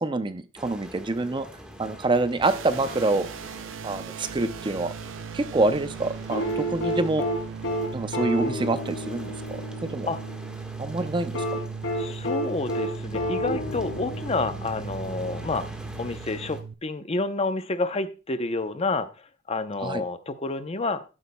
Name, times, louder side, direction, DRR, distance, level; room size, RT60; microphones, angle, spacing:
voice 1, 0.0-1.5 1.8-3.3 3.8-4.9 5.3-7.2 7.9-10.1 10.8-11.6 19.8-20.0, right 2 dB, 25° right, 11 dB, 0.5 m, -26 dB
sound 1, 0.6-16.6, equal, 5° right, 1.4 m, -43 dB
sound 2, 2.4-16.7, right 6 dB, 80° right, 0.5 m, -38 dB
sound 3, 6.3-10.4 11.3-14.9 16.4-16.5, equal, 85° left, 2.6 m, -30 dB
voice 2, 12.0-15.7 16.0-19.1 19.5-21.0, left 3 dB, 30° left, 10 dB, 0.7 m, -29 dB
12.5 x 9.4 x 2.2 m, 0.31 s
head